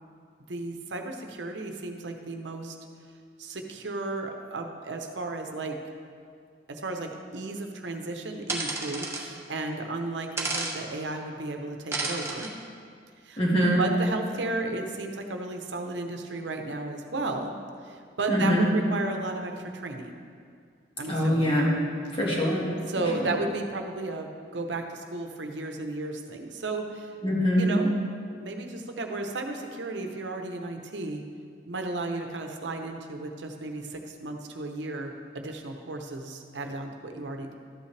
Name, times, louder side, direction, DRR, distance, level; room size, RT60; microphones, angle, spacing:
voice 1, 0.5-2.8 3.4-5.8 6.7-12.5 13.2-13.4 13.8-17.5 17.8-20.2 21.0-21.6 22.9-27.1 27.6-27.9 28.4-31.2 31.7-37.5, right 2 dB, 80° right, 4 dB, 0.8 m, -34 dB
sound 1, 8.5-9.2 10.4-10.7 11.9-12.5, right 3 dB, 15° right, 1.0 m, -31 dB
voice 2, 13.4-13.8 18.3-18.7 21.1-21.7 22.1-22.7 23.2-23.3 27.2-27.8, equal, 30° left, -4 dB, 1.8 m, -23 dB
12.5 x 8.4 x 3.3 m, 2.2 s
head